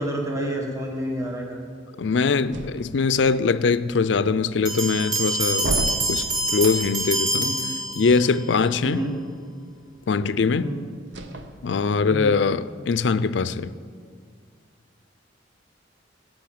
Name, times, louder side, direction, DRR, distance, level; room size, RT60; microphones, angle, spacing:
voice 1, 0.0-1.6 7.3-7.7 8.8-9.1 10.5-10.9 12.1-12.4, right 1 dB, 15° right, 1.5 m, -29 dB
voice 2, 2.0-7.6 8.0-9.0 10.1-10.7 11.6-13.7, left 4 dB, 70° left, 0.4 m, -22 dB
sound 1, 2.5-3.3 5.6-7.2 11.1-12.1, right 1 dB, 65° right, 0.9 m, -32 dB
sound 2, 4.7-8.4, right 2 dB, 45° right, 2.4 m, -26 dB
15.5 x 6.3 x 8.6 m
head